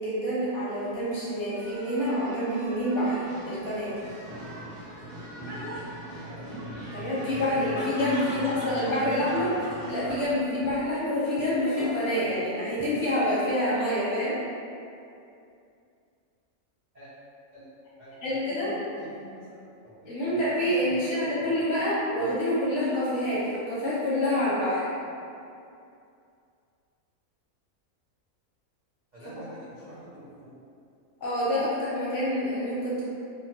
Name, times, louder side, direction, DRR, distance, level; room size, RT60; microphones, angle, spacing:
voice 1, 0.0-3.9 6.9-14.4 18.2-18.7 20.1-24.8 29.2-29.3 31.2-33.0, left 1 dB, 60° left, -9 dB, 0.9 m, -27 dB
sound 1, 0.7-10.2, right 1 dB, 45° right, 0.8 m, -42 dB
Laughter, 3.9-12.4 12.8-13.5, equal, 20° left, 1.2 m, -42 dB
voice 2, 18.0-21.9 22.2-22.3 29.1-30.6, right 1 dB, 65° right, -12 dB, 0.4 m, -46 dB
2.7 x 2.2 x 2.7 m, 2.5 s
omnidirectional pair, 1.6 m